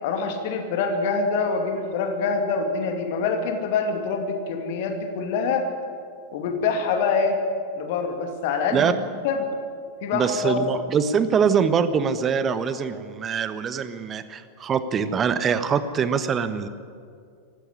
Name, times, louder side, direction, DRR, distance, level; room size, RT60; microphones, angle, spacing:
voice 1, 0.0-5.7 6.3-7.4 7.8-9.5 10.0-10.7, left 4 dB, 50° left, 5 dB, 2.5 m, -25 dB
voice 2, 10.1-16.7, right 6 dB, 25° right, 12 dB, 1.3 m, -23 dB
19.0 x 15.5 x 9.9 m, 2.3 s
figure-of-eight pair, 90°, 0 cm